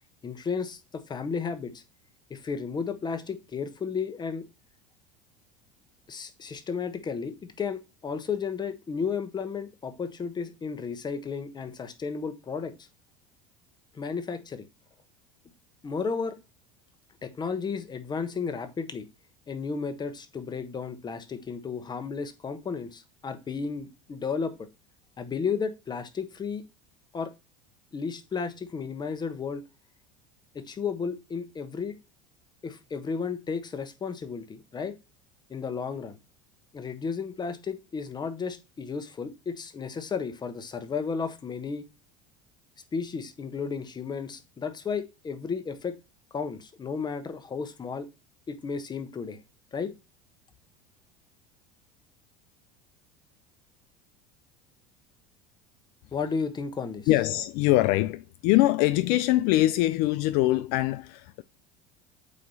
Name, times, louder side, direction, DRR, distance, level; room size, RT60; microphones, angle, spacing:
voice 1, 0.2-1.8 2.3-4.4 6.1-12.7 13.9-14.7 15.8-16.4 17.2-19.1 19.5-24.5 25.2-26.6 27.1-27.3 27.9-29.6 30.5-31.9 32.6-35.0 35.5-36.2 36.7-41.9 42.9-45.9 46.3-48.1 48.5-49.4 49.7-49.9 56.1-57.1, left 5 dB, 25° left, 1.1 m, -33 dB
voice 2, 57.1-61.4, left 16 dB, 65° left, 0.4 m, -23 dB
8.4 x 3.0 x 4.0 m
supercardioid pair, 105°, 17 cm